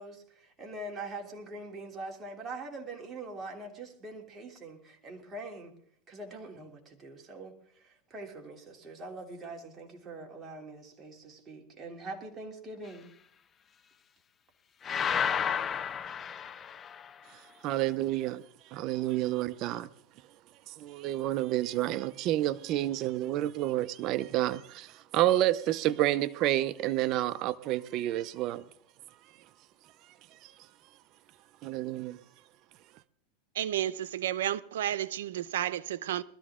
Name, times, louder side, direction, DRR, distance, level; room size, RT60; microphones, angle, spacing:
voice 1, 0.0-5.7 6.1-13.1, right 2 dB, 20° right, 3.2 m, -43 dB
sound 1, 14.8-17.1, left 7 dB, 25° left, 0.6 m, -31 dB
voice 2, 17.6-18.4 18.7-19.9 20.7-28.6 31.6-32.2, right 14 dB, 45° right, 0.6 m, -29 dB
voice 3, 33.6-36.2, right 12 dB, 85° right, 0.7 m, -32 dB
21.0 x 13.5 x 3.7 m
supercardioid pair, 135°, 0 cm